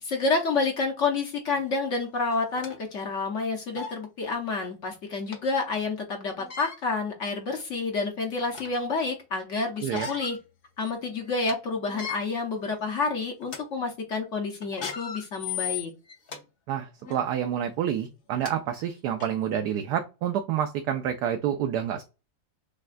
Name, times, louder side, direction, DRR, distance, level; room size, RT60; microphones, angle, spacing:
voice 1, 0.0-10.4 10.8-15.9, left 3 dB, 55° left, 2 dB, 0.9 m, -29 dB
sound 1, 1.6-1.7 2.3-2.8 3.4-3.5 3.7-4.0 5.3-5.4 6.3-6.8 7.5-7.6 8.1-8.8 9.8-10.4 10.8-10.9 11.3-11.5 11.9-12.2 12.8-13.0 13.4-13.6 14.6-16.4 17.0-17.2 18.1-18.2 18.4-18.5 19.2-19.3, left 7 dB, 80° left, 0.5 m, -36 dB
voice 2, 16.7-22.0, right 9 dB, 75° right, 6 dB, 1.0 m, -28 dB
6.5 x 2.3 x 2.5 m, 0.29 s
omnidirectional pair, 2.1 m